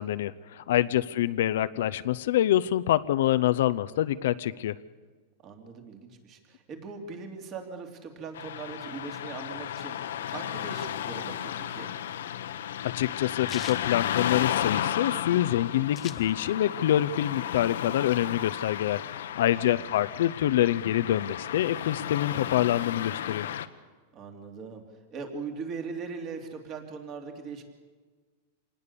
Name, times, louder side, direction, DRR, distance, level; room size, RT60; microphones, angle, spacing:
voice 1, 0.0-4.8 12.8-23.5, left 12 dB, 70° left, 12 dB, 0.6 m, -26 dB
voice 2, 5.4-11.9 19.4-19.9 24.1-24.8 25.1-27.6, right 4 dB, 30° right, 4 dB, 2.9 m, -40 dB
Car passing by / Traffic noise roadway noise, 8.3-23.7, left 10 dB, 85° left, 1.2 m, -33 dB
sound 1, 12.0-14.9 15.2-15.3 15.5-16.8 17.2-18.3, left 10 dB, 20° left, 0.8 m, -44 dB
26.5 x 19.5 x 6.9 m, 1.4 s
supercardioid pair, 160°, 0 cm